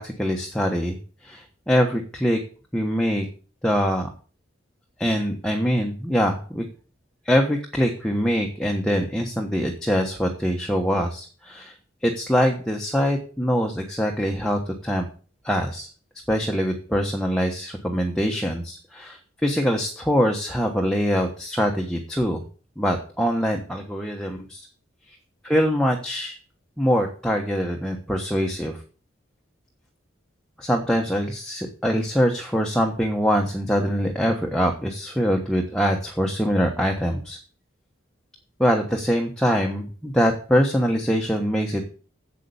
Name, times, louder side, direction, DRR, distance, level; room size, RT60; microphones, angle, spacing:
voice 1, 0.0-2.4 2.7-3.3 3.6-4.1 5.0-6.6 7.2-11.7 12.0-15.1 15.4-15.9 16.3-22.4 22.8-24.6 25.1-25.2 25.4-26.3 26.8-28.8 30.6-37.4 38.6-41.9, equal, 5° left, 1 dB, 1.2 m, -23 dB
8.4 x 7.6 x 7.0 m, 0.39 s
head